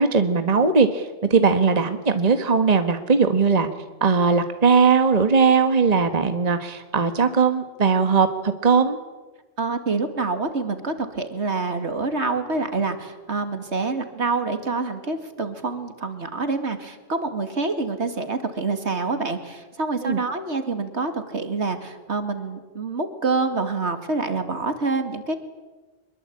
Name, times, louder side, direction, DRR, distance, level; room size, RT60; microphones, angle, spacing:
voice 1, 0.0-3.7 4.0-9.0 20.0-20.2, right 5 dB, 35° right, 8 dB, 1.5 m, -19 dB
voice 2, 9.6-25.3, right 3 dB, 65° right, 8 dB, 2.5 m, -26 dB
24.5 x 22.0 x 8.6 m, 1.2 s
omnidirectional pair, 1.3 m